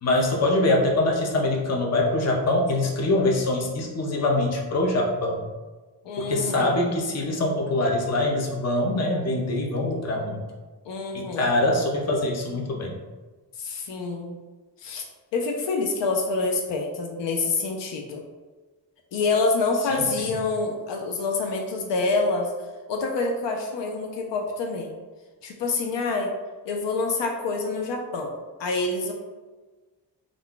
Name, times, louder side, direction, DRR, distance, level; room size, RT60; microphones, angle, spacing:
voice 1, 0.0-5.4 6.2-10.4 11.1-12.9 19.9-20.4, left 2 dB, 40° left, 0 dB, 0.6 m, -24 dB
voice 2, 6.0-6.7 10.8-11.5 13.6-14.4 14.8-15.0 15.3-18.2 19.1-22.5 22.9-24.9 25.4-26.3 26.7-28.3 28.6-29.1, left 3 dB, 80° left, 2 dB, 0.5 m, -27 dB
2.4 x 2.2 x 3.7 m, 1.3 s
wide cardioid pair, 105°, 43 cm